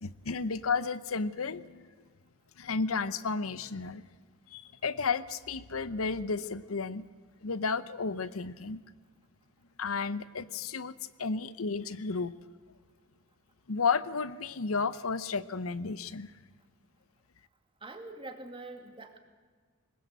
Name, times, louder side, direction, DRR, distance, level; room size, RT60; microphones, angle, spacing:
voice 1, 0.0-1.9 2.6-4.1 4.5-7.0 7.4-8.8 9.8-10.9 11.2-12.3 13.7-16.3, left 4 dB, 85° left, 15 dB, 0.8 m, -32 dB
voice 2, 17.8-19.2, right 2 dB, 25° right, 5 dB, 2.3 m, -44 dB
21.5 x 20.0 x 8.1 m, 1.5 s
head